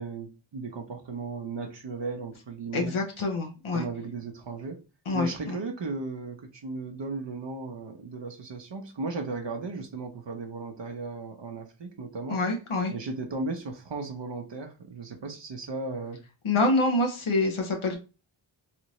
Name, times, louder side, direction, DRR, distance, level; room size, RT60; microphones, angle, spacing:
voice 1, 0.0-3.0 3.7-4.8 5.1-12.4 12.9-16.2, right 3 dB, 60° right, 0.8 m, -36 dB
voice 2, 2.7-3.8 5.1-5.6 12.3-12.9 16.4-18.0, left 2 dB, 75° left, 0.9 m, -26 dB
3.2 x 2.7 x 3.0 m
cardioid pair, 45°, 50 cm